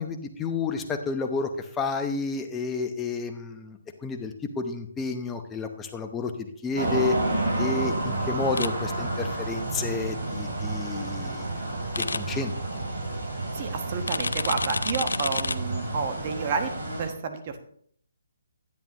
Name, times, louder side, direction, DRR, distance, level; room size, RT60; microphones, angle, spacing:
voice 1, 0.0-7.2 7.6-11.5 12.0-12.8, left 4 dB, 10° left, 5 dB, 0.8 m, -31 dB
sound 1, 6.8-17.1, right 2 dB, 65° right, 3.4 m, -30 dB
sound 2, 8.6-8.7 11.9-12.2 14.1-15.6, left 3 dB, 85° left, 0.5 m, -28 dB
voice 2, 13.5-16.7 17.0-17.8, right 5 dB, 35° right, 6 dB, 1.2 m, -30 dB
10.5 x 8.9 x 2.9 m, 0.62 s
hypercardioid pair, 155°, 0 cm